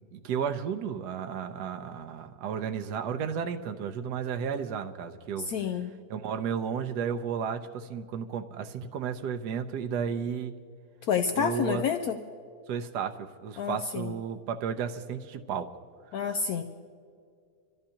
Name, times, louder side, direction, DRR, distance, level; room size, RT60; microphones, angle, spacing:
voice 1, 0.1-5.5 6.1-10.5 11.3-11.8 12.7-15.7 16.1-16.2, right 7 dB, 75° right, 7 dB, 1.3 m, -33 dB
voice 2, 5.4-6.0 11.1-12.2 13.6-14.1 16.1-16.6, left 7 dB, 70° left, 6 dB, 1.1 m, -29 dB
26.5 x 14.0 x 2.9 m, 2.2 s
omnidirectional pair, 1.8 m